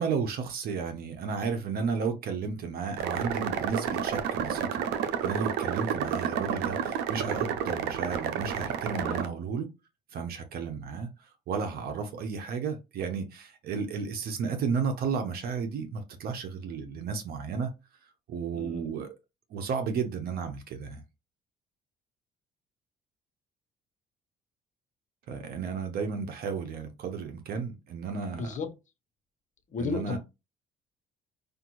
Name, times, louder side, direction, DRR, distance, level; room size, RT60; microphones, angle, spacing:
voice 1, 0.0-4.8 5.2-9.7 10.1-17.7 18.3-19.1 19.5-21.0 25.3-28.5 29.8-30.2, right 5 dB, 65° right, 0.9 m, -33 dB
sound 1, 3.0-9.3, right 8 dB, 85° right, 0.6 m, -30 dB
voice 2, 8.9-9.3 18.5-18.9 28.3-28.7 29.7-30.2, left 4 dB, 45° left, 1.0 m, -34 dB
5.1 x 2.5 x 3.0 m
cardioid pair, 110°, 17 cm